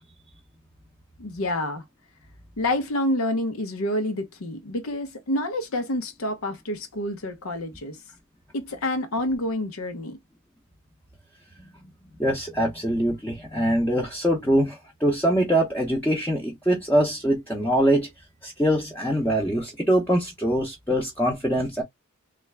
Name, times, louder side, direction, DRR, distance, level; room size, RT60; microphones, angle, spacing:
voice 1, 1.2-1.8 2.6-8.0 8.5-10.2, left 1 dB, 85° left, 0.7 m, -28 dB
voice 2, 12.2-18.1 18.4-21.8, equal, 10° left, 0.6 m, -23 dB
3.3 x 2.4 x 3.2 m
head